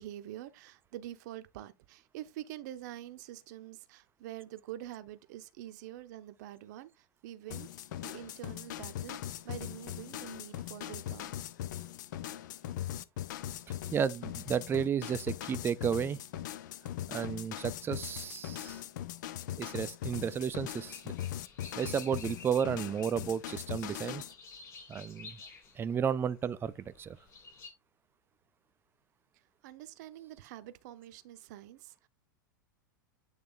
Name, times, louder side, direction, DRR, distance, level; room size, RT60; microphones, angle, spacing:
voice 1, 0.0-9.2 9.4-11.3 29.3-32.1, right 13 dB, 55° right, 0.7 m, -46 dB
sound 1, 7.5-24.3, left 12 dB, 60° left, 0.5 m, -40 dB
voice 2, 13.7-16.2 17.1-18.8 19.6-21.1 21.8-24.2 24.9-25.4 25.8-27.2, right 7 dB, 20° right, 0.4 m, -33 dB
sound 2, 20.5-27.7, left 4 dB, 25° left, 3.1 m, -53 dB
8.8 x 3.1 x 3.8 m
hypercardioid pair, 95°, 11 cm